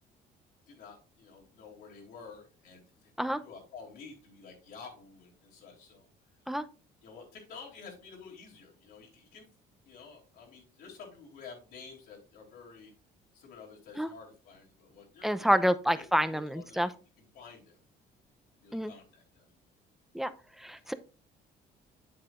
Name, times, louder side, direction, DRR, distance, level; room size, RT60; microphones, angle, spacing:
voice 1, 0.7-6.1 7.0-9.5 9.8-12.9 13.3-15.5 15.9-16.9 17.3-17.8 18.6-19.5 20.8-20.9, left 5 dB, 75° left, -1 dB, 3.1 m, -50 dB
voice 2, 15.2-16.9 18.7-18.9 20.1-20.3 20.6-20.9, equal, ahead, 11 dB, 0.6 m, -28 dB
8.3 x 7.6 x 2.5 m, 0.36 s
cardioid pair, 110°, 17 cm